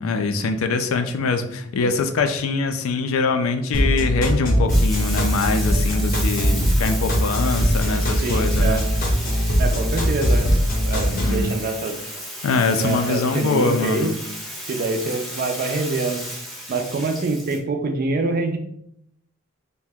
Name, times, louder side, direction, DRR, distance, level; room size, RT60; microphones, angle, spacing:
voice 1, 0.0-8.8 11.1-11.5 12.4-14.2, left 4 dB, 75° left, 7 dB, 0.4 m, -23 dB
sound 1, 3.7-11.4, equal, 40° left, 0.6 m, -20 dB
Bathtub (filling or washing), 4.7-17.6, equal, ahead, 0.5 m, -34 dB
voice 2, 8.2-8.8 9.6-10.5 10.8-12.0 12.7-14.1 14.7-16.2 16.7-18.6, right 3 dB, 45° right, 5 dB, 0.4 m, -25 dB
2.8 x 2.1 x 3.4 m, 0.73 s
head